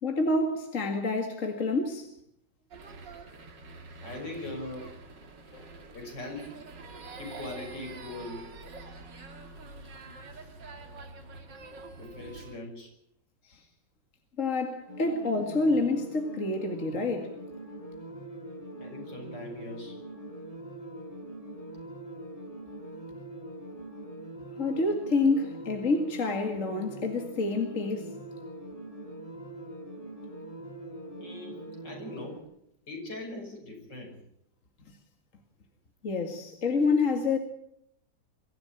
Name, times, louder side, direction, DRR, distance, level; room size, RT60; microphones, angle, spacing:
voice 1, 0.0-2.1 5.5-5.7 13.5-13.6 14.4-17.3 24.6-28.2 36.0-37.4, left 3 dB, 45° left, 2.3 m, -28 dB
sound 1, 2.7-12.6, right 3 dB, 70° right, 2.8 m, -46 dB
voice 2, 4.0-4.9 5.9-6.7 7.1-8.6 12.0-12.9 15.0-15.2 18.8-20.0 31.2-31.6 31.8-32.5 32.9-34.2, left 2 dB, 70° left, 6.7 m, -41 dB
sound 2, 14.9-32.4, right 1 dB, 20° left, 4.0 m, -43 dB
23.5 x 14.5 x 8.9 m
omnidirectional pair, 2.0 m